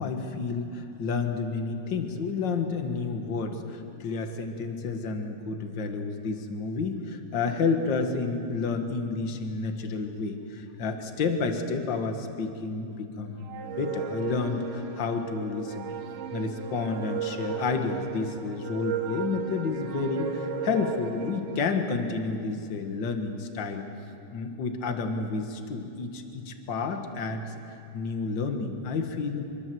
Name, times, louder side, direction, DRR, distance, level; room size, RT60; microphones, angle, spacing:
voice 1, 0.0-15.9 16.3-23.8 24.3-29.4, left 4 dB, 55° left, 5 dB, 1.3 m, -30 dB
sound 1, 13.5-21.6, right 6 dB, 75° right, 3.5 m, -35 dB
25.5 x 23.5 x 7.9 m, 2.6 s
omnidirectional pair, 4.7 m